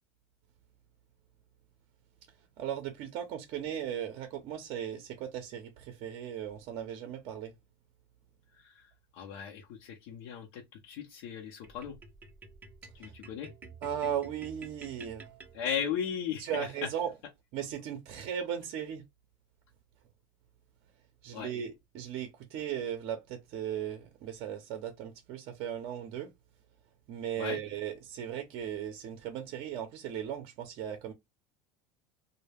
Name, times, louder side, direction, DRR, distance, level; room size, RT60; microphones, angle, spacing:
voice 1, 2.6-7.5 13.0-13.1 13.8-15.3 16.4-17.1 17.5-19.0 21.2-26.3 27.1-31.1, right 9 dB, 55° right, 0.5 m, -37 dB
voice 2, 8.5-12.0 12.9-13.5 15.5-16.9 21.3-21.5 27.4-27.6, left 8 dB, 70° left, 0.6 m, -37 dB
sound 1, 11.6-16.1, right 4 dB, 15° right, 0.6 m, -51 dB
2.2 x 2.0 x 3.3 m
supercardioid pair, 105°, 12 cm